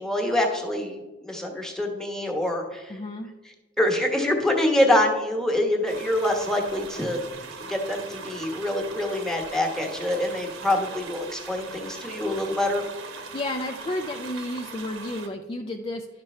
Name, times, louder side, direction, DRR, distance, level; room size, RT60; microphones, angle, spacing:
voice 1, 0.0-3.0 3.8-7.2 7.7-12.9, left 1 dB, 5° left, 2 dB, 1.2 m, -25 dB
voice 2, 2.9-3.3 13.3-16.1, left 1 dB, 25° left, 4 dB, 0.4 m, -32 dB
sound 1, 5.9-15.3, right 4 dB, 65° right, 1.0 m, -40 dB
11.0 x 6.0 x 4.3 m, 1.2 s
head